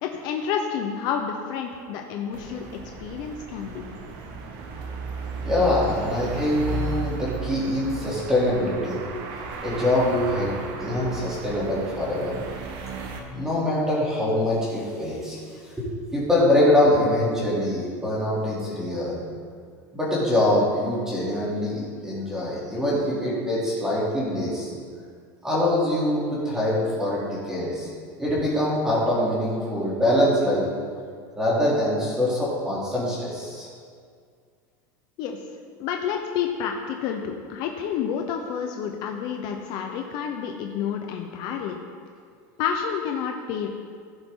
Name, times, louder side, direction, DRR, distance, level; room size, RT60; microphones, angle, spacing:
voice 1, 0.0-2.7 3.0-3.9 35.2-35.4 35.8-41.8 42.6-43.7, left 7 dB, 50° left, 3 dB, 0.9 m, -29 dB
sound 1, 2.3-13.2, right 4 dB, 50° right, 1.3 m, -34 dB
voice 2, 5.4-9.0 9.6-12.3 13.3-15.4 15.8-19.2 19.9-24.7 25.4-27.9 28.2-30.7 31.4-33.7, left 1 dB, 5° right, -7 dB, 3.2 m, -24 dB
16.0 x 7.1 x 3.9 m, 2.1 s
supercardioid pair, 160°, 10 cm